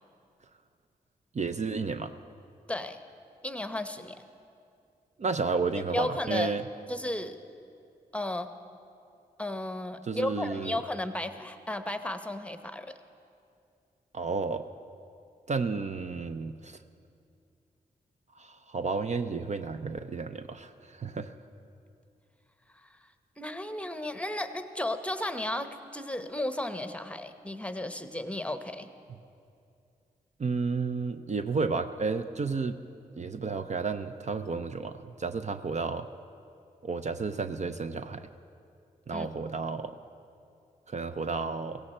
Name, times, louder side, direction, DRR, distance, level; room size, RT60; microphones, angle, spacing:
voice 1, 1.3-2.1 5.2-6.6 10.0-10.8 14.1-14.6 15.5-16.8 18.4-21.3 30.4-32.8 33.1-36.1 36.8-38.3 39.1-40.0 40.9-41.8, right 4 dB, 45° right, 9 dB, 0.6 m, -32 dB
voice 2, 3.4-4.2 5.9-6.5 6.9-7.3 8.1-8.5 9.4-12.9 23.4-28.9 39.1-39.3, left 1 dB, 5° left, 9 dB, 0.9 m, -34 dB
16.0 x 16.0 x 4.3 m, 2.5 s
cardioid pair, 45°, 17 cm